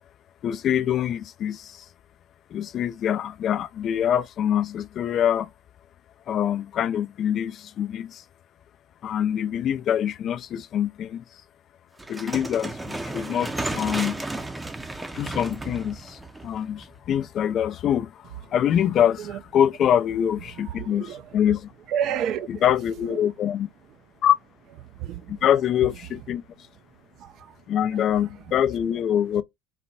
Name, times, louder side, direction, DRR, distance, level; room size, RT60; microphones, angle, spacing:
voice 1, 0.4-1.9 2.5-5.5 6.3-8.2 9.0-11.4 12.1-14.2 15.1-21.7 22.5-23.7 24.2-24.3 25.3-26.7 27.7-29.4, left 9 dB, 45° left, 0.4 m, -25 dB
sound 1, 12.0-17.1, right 2 dB, 10° right, 0.6 m, -33 dB
voice 2, 20.7-21.2 21.9-22.6 23.1-23.2 25.0-25.3 27.2-27.5, right 9 dB, 55° right, 0.4 m, -30 dB
4.1 x 2.2 x 4.1 m
hypercardioid pair, 90°, 0 cm